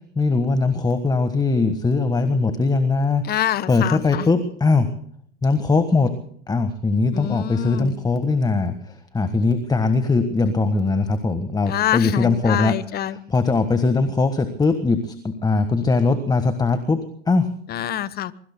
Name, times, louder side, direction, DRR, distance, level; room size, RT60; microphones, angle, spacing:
voice 1, 0.1-3.2 3.7-4.9 5.4-6.1 6.5-12.8 13.3-17.5, left 3 dB, 10° left, 10 dB, 1.5 m, -20 dB
voice 2, 3.2-4.3 7.1-8.0 11.7-13.2 17.7-18.3, left 12 dB, 30° left, 17 dB, 1.1 m, -26 dB
24.5 x 23.5 x 2.2 m, 0.63 s
hypercardioid pair, 105°, 34 cm